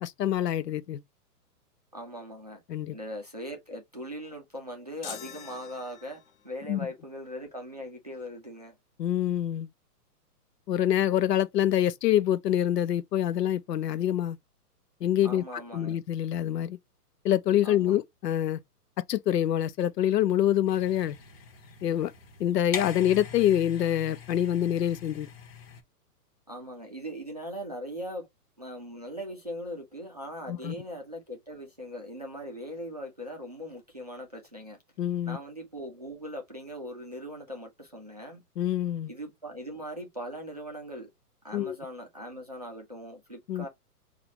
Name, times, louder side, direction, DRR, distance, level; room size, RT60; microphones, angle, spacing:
voice 1, 0.0-1.0 2.7-3.0 6.7-6.9 9.0-9.7 10.7-14.4 15.0-16.8 17.2-18.6 19.1-21.2 21.8-22.1 22.4-25.3 30.5-30.7 35.0-35.4 38.6-39.1 41.5-41.8 43.5-43.6, left 11 dB, 90° left, 0.7 m, -26 dB
voice 2, 1.9-2.6 2.9-8.8 15.2-16.0 17.6-18.0 26.5-28.3 28.6-34.8 35.3-38.4 39.1-41.1 41.4-43.7, equal, 30° right, 0.4 m, -40 dB
sound 1, 5.0-6.5, left 9 dB, 60° left, 1.1 m, -44 dB
sound 2, 20.7-25.8, left 5 dB, 40° left, 0.9 m, -42 dB
5.0 x 2.4 x 2.7 m
hypercardioid pair, 170°, 47 cm